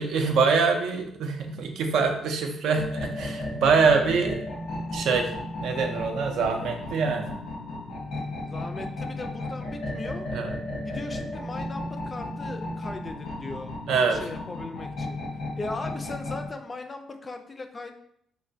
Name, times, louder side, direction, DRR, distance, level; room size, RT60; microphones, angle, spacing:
voice 1, 0.0-4.4 4.9-5.3 5.6-7.4 10.3-10.5 13.9-14.2, right 5 dB, 80° right, 4 dB, 0.4 m, -24 dB
sound 1, 2.7-16.5, left 1 dB, 90° left, 1.0 m, -34 dB
voice 2, 8.4-10.3 10.8-13.7 14.1-15.2 15.6-17.9, left 2 dB, 30° left, 6 dB, 0.3 m, -38 dB
3.1 x 2.2 x 2.6 m, 0.70 s
cardioid pair, 90°, 0 cm